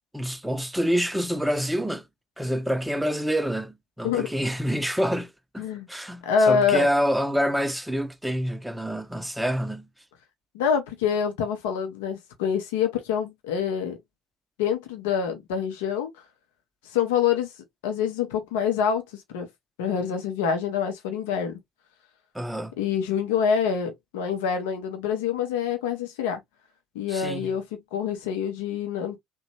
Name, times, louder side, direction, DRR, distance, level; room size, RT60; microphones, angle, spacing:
voice 1, 0.1-2.1 2.4-9.9 22.3-22.7 27.1-27.5, equal, 5° right, 0.6 m, -27 dB
voice 2, 6.2-6.9 10.5-14.0 14.6-16.1 16.9-17.5 17.8-19.0 19.3-19.5 19.8-21.6 22.8-26.4 26.9-29.2, left 7 dB, 70° left, 0.6 m, -26 dB
2.9 x 2.2 x 2.8 m
figure-of-eight pair, 55°, 0 cm